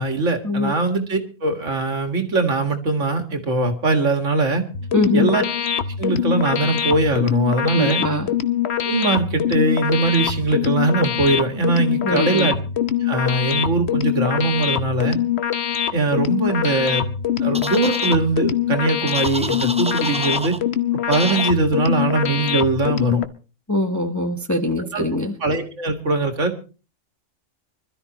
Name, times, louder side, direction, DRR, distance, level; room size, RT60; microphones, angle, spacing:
voice 1, 0.0-4.6 5.1-5.4 6.0-8.0 8.8-12.6 13.0-15.2 15.9-17.0 17.4-20.6 20.9-23.2 24.9-25.1 25.4-26.6, right 3 dB, 65° right, 6 dB, 2.3 m, -21 dB
sound 1, 4.7-23.2, left 10 dB, 55° left, 1.1 m, -23 dB
voice 2, 4.9-5.3 7.7-8.3 12.0-12.5 23.7-25.3, left 1 dB, 15° left, 5 dB, 1.0 m, -22 dB
sound 2, 17.5-18.2 19.1-20.6 21.1-21.5, right 1 dB, 10° right, 0.5 m, -30 dB
25.0 x 13.0 x 3.0 m, 0.35 s
omnidirectional pair, 1.4 m